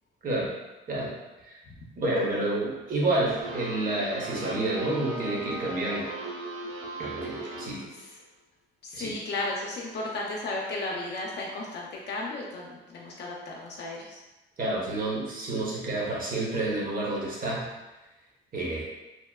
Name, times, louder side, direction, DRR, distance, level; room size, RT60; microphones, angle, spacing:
voice 1, 2.0-6.1 7.0-7.9 8.9-9.2 14.6-17.7 18.5-18.8, right 2 dB, 45° right, -4 dB, 0.8 m, -29 dB
sound 1, 3.4-8.0, right 2 dB, 85° right, 0.5 m, -38 dB
voice 2, 8.8-14.2, left 2 dB, 60° left, -3 dB, 0.4 m, -34 dB
2.8 x 2.0 x 2.2 m, 1.1 s
cardioid pair, 90°, 20 cm